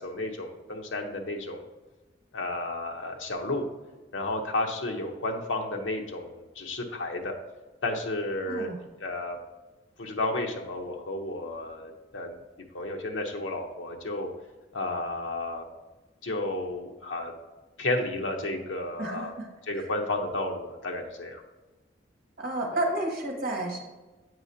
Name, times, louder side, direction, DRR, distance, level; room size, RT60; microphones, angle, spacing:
voice 1, 0.0-1.7 2.3-3.6 4.1-7.3 7.8-8.7 9.0-9.4 10.0-12.4 12.7-14.3 14.7-15.6 16.2-17.3 17.8-19.3 19.7-21.4, left 2 dB, 85° left, 2 dB, 0.8 m, -32 dB
voice 2, 8.5-8.8 18.5-18.6 19.0-19.5 19.7-19.9 22.4-23.8, right 1 dB, 50° right, 1 dB, 1.2 m, -31 dB
7.9 x 5.0 x 2.7 m, 1.1 s
head